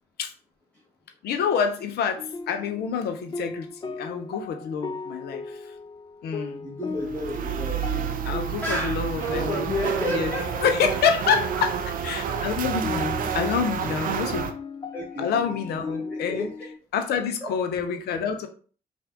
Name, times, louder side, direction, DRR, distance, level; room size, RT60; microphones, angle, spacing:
voice 1, 1.2-5.7 6.2-6.7 8.2-9.7 10.1-10.3 10.6-11.8 12.0-14.5 15.2-16.5 16.9-18.5, left 7 dB, 55° left, 6 dB, 0.8 m, -27 dB
sound 1, 2.2-16.8, left 4 dB, 25° left, 0.5 m, -37 dB
voice 2, 6.6-7.8 8.6-10.7 12.1-12.6 14.2-14.3 14.9-15.3 16.0-16.5 17.4-17.5, left 1 dB, 5° left, -5 dB, 1.6 m, -32 dB
sound 2, 7.0-14.5, right 9 dB, 45° right, 0.6 m, -29 dB
5.6 x 2.6 x 3.6 m, 0.41 s
figure-of-eight pair, 40°, 19 cm